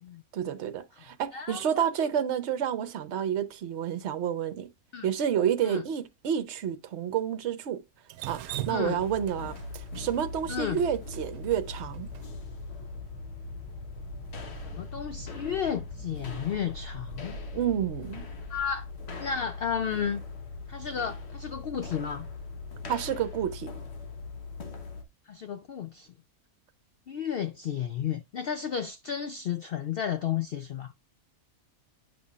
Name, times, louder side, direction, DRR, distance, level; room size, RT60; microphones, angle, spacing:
voice 1, 0.3-4.7 5.0-7.8 8.3-9.6 10.0-12.1 17.5-18.3 22.9-23.7, right 9 dB, 55° right, 1.0 m, -29 dB
voice 2, 1.3-1.8 4.9-5.1 5.6-5.8 8.7-9.1 10.5-10.8 14.6-17.4 18.5-18.9 19.2-20.2 20.7-22.3 25.3-26.1 27.1-30.9, left 8 dB, 75° left, 0.5 m, -32 dB
Drip, 8.1-12.2, right 13 dB, 80° right, 1.1 m, -39 dB
sound 1, 8.2-24.8, right 4 dB, 25° right, 1.1 m, -48 dB
sound 2, 9.0-25.0, left 5 dB, 50° left, 1.3 m, -41 dB
9.3 x 5.6 x 2.4 m
omnidirectional pair, 1.5 m